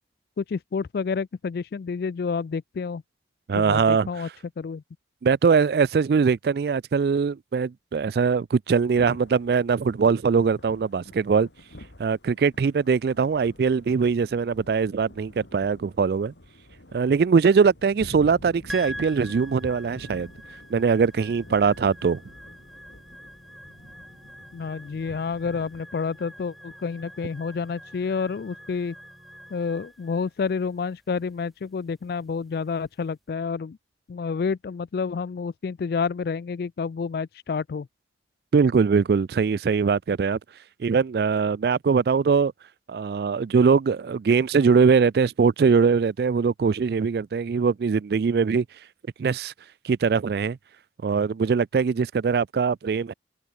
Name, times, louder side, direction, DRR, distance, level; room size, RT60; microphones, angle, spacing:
voice 1, 0.4-3.0 3.5-4.3 4.6-4.8 24.5-28.9 29.5-33.8 34.1-37.9, left 5 dB, 60° left, 0.3 m, -29 dB
voice 2, 3.5-4.1 5.2-11.5 12.0-16.3 16.9-20.3 20.7-22.2 38.5-40.4 40.8-42.5 42.9-48.7 49.2-49.5 49.8-50.6 51.0-53.1, right 5 dB, 60° right, 0.3 m, -22 dB
Thunder / Rain, 8.8-25.8, left 1 dB, 85° left, 3.5 m, -48 dB
sound 1, 18.7-33.1, equal, ahead, 2.3 m, -45 dB
sound 2, 21.2-29.7, equal, 25° right, 7.8 m, -55 dB
head